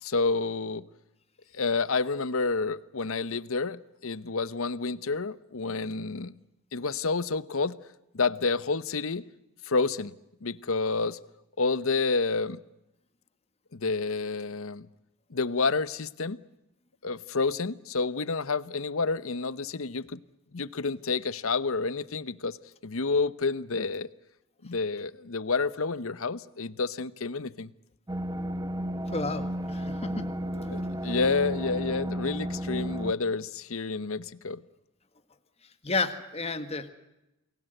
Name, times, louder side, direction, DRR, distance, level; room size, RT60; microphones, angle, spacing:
voice 1, 0.0-0.9 1.5-6.3 6.7-7.8 8.1-9.3 9.6-10.1 10.4-11.2 11.6-12.6 13.7-14.9 15.3-16.4 17.0-20.2 20.5-22.6 22.8-24.1 24.6-27.7 30.5-34.6, left 4 dB, 70° left, 17 dB, 0.9 m, -29 dB
sound 1, 28.1-33.1, equal, 15° right, 1.1 m, -33 dB
voice 2, 29.1-30.3 35.8-36.9, left 3 dB, 30° left, 9 dB, 1.6 m, -31 dB
29.0 x 20.5 x 7.9 m, 0.91 s
head